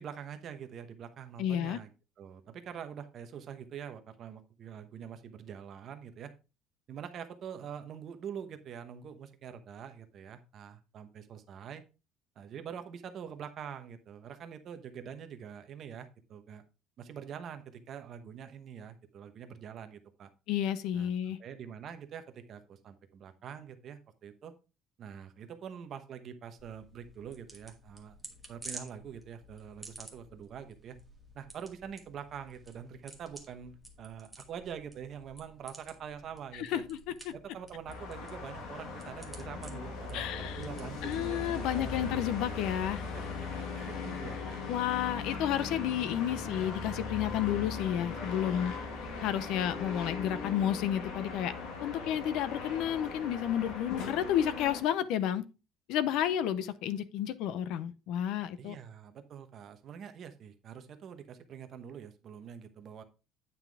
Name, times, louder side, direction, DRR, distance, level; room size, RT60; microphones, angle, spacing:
voice 1, 0.0-1.9 2.2-6.3 6.9-11.8 12.4-16.6 17.0-20.3 20.9-24.5 25.0-28.2 28.5-31.0 31.3-36.8 37.3-42.2 42.9-43.2 43.6-44.6 58.6-63.0, right 8 dB, 35° right, 1.0 m, -45 dB
voice 2, 1.4-1.8 20.5-21.4 36.6-37.0 37.2-37.3 40.1-40.6 41.0-43.0 44.7-48.7 49.2-51.5 51.8-55.4 55.9-58.7, left 10 dB, 60° left, 0.6 m, -31 dB
sound 1, 26.6-41.8, right 1 dB, ahead, 1.3 m, -52 dB
sound 2, 37.9-54.8, left 4 dB, 90° left, 2.0 m, -39 dB
9.3 x 5.8 x 3.5 m
cardioid pair, 180°, 0 cm